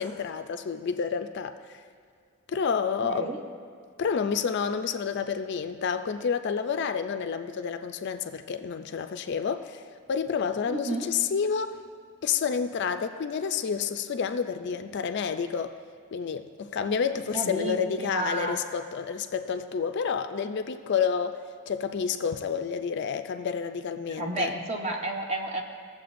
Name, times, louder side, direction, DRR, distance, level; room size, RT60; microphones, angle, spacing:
voice 1, 0.0-1.5 2.5-3.3 4.0-9.8 10.1-11.7 12.2-15.7 16.1-24.5, left 6 dB, 50° left, 9 dB, 0.4 m, -29 dB
voice 2, 3.0-3.4 10.7-11.1 17.3-18.6 24.2-25.6, right 1 dB, 30° right, 2 dB, 0.8 m, -31 dB
17.0 x 7.2 x 2.6 m, 2.1 s
head